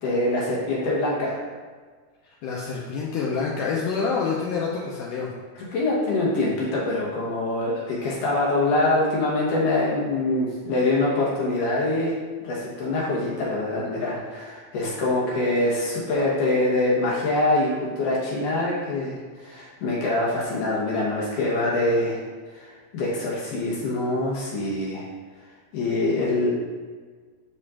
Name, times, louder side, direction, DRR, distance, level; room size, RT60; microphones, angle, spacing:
voice 1, 0.0-1.4 5.7-12.1 12.4-19.2 19.4-22.2 22.5-25.0 25.7-26.5, left 2 dB, 70° left, -5 dB, 2.4 m, -24 dB
voice 2, 2.2-5.3, left 5 dB, 90° left, -3 dB, 1.8 m, -27 dB
8.2 x 5.2 x 2.5 m, 1.5 s
omnidirectional pair, 4.4 m